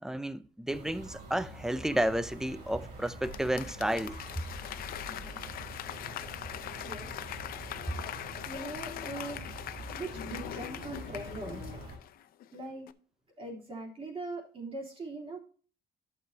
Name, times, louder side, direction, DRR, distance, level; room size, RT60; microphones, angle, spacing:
voice 1, 0.0-4.2, right 1 dB, 5° right, 0.4 m, -32 dB
sound 1, 0.7-12.0, right 1 dB, 80° right, 3.8 m, -45 dB
Applause / Crowd, 3.1-12.5 12.9-13.0, left 12 dB, 60° left, 0.5 m, -42 dB
voice 2, 5.0-5.4 6.8-7.1 7.5-7.6 8.5-9.5 9.9-11.8 12.5-12.9 13.4-15.4, right 2 dB, 35° right, 3.2 m, -41 dB
11.5 x 6.9 x 2.7 m
cardioid pair, 110°, 17 cm